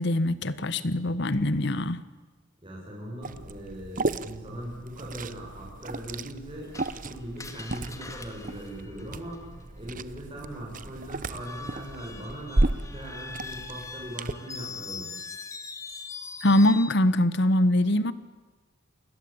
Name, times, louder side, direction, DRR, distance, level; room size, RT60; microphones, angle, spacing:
voice 1, 0.0-2.0 16.4-18.1, left 1 dB, 60° left, 15 dB, 1.3 m, -23 dB
voice 2, 2.6-9.4 9.8-15.1, equal, 25° right, -3 dB, 7.0 m, -40 dB
Liquid, 3.2-14.3, right 2 dB, 45° right, 1.0 m, -34 dB
Screech, 6.7-9.6 11.3-17.0, left 4 dB, 15° left, 2.2 m, -42 dB
29.5 x 21.5 x 8.8 m, 1.3 s
head